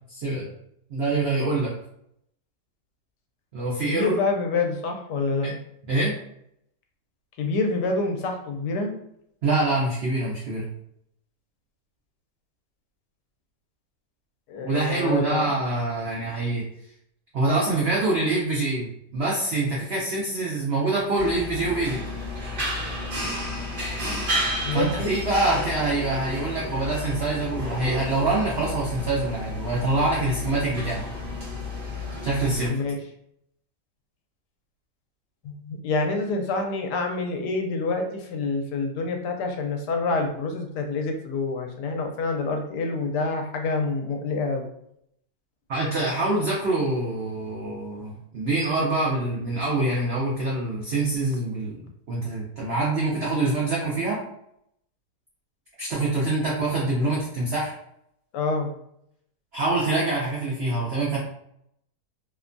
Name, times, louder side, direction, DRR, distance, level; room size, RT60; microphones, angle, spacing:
voice 1, 0.1-0.5 0.9-1.7 3.5-4.2 5.4-5.5 5.9-6.1 9.4-10.7 14.6-16.6 17.3-22.0 24.7-31.0 32.2-32.7 45.7-51.8 52.1-54.2 55.8-57.7 59.5-61.2, right 2 dB, 70° right, -4 dB, 0.6 m, -25 dB
voice 2, 3.8-5.6 7.4-8.9 14.5-15.4 24.6-25.1 32.7-33.0 35.4-44.7 58.3-58.7, left 3 dB, 80° left, 3 dB, 1.1 m, -27 dB
sound 1, 21.2-32.7, left 1 dB, 40° right, 0.9 m, -31 dB
2.9 x 2.1 x 2.5 m, 0.73 s
omnidirectional pair, 1.8 m